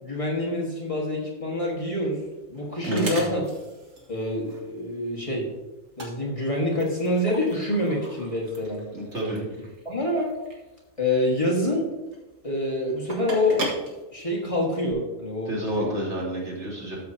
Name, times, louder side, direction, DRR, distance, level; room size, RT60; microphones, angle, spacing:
voice 1, 0.0-2.2 2.5-3.4 4.1-5.5 6.0-8.8 9.3-9.4 9.9-10.3 11.0-11.9 12.4-13.6 14.1-15.9, left 1 dB, 25° left, -3 dB, 1.8 m, -26 dB
sound 1, 1.6-14.9, right 1 dB, 85° right, 2.1 m, -38 dB
voice 2, 8.9-9.4 15.4-17.0, right 1 dB, 60° right, -5 dB, 3.2 m, -29 dB
13.0 x 7.0 x 2.8 m, 1.1 s
omnidirectional pair, 1.3 m